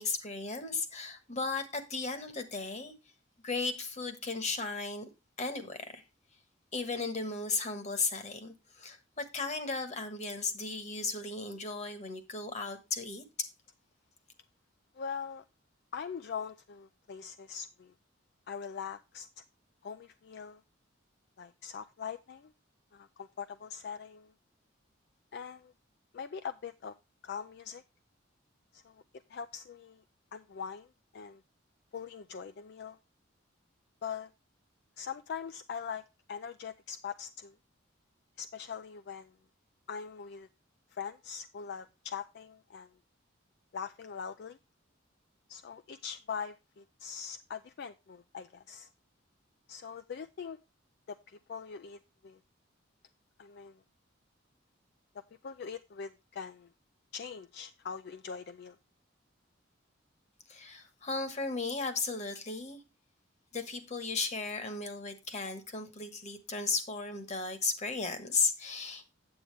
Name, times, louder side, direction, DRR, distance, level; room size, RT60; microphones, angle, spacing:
voice 1, 0.0-2.9 3.4-5.1 5.4-6.0 6.7-13.5 60.5-62.8 63.5-69.1, left 4 dB, 35° left, 1.3 m, -35 dB
voice 2, 14.9-15.4 15.9-17.9 18.5-19.4 19.8-20.6 21.4-22.5 22.9-24.3 25.3-25.7 26.1-26.9 27.2-27.8 28.7-29.0 29.3-30.0 30.3-30.9 31.1-31.4 31.9-33.0 34.0-34.3 35.0-36.0 36.3-37.5 38.4-39.4 39.9-40.5 40.9-42.9 43.7-44.6 45.5-48.9 49.7-50.6 51.1-52.4 53.4-53.8 55.4-56.7 57.1-58.8, left 6 dB, 55° left, 0.4 m, -42 dB
8.8 x 8.3 x 3.3 m
head